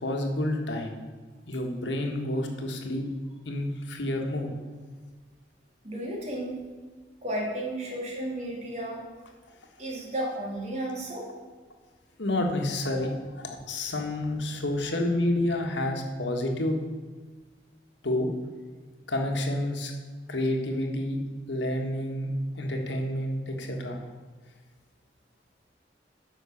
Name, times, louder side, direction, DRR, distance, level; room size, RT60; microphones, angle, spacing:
voice 1, 0.0-1.0 1.5-3.0 3.4-4.5 12.2-16.8 18.0-18.3 19.1-19.9 20.3-21.2 21.5-22.3 22.5-24.0, left 1 dB, 90° left, 2 dB, 1.5 m, -29 dB
voice 2, 5.8-6.6 7.2-9.1 9.8-11.3, right 1 dB, 40° right, -2 dB, 2.5 m, -33 dB
9.9 x 5.6 x 7.1 m, 1.4 s
head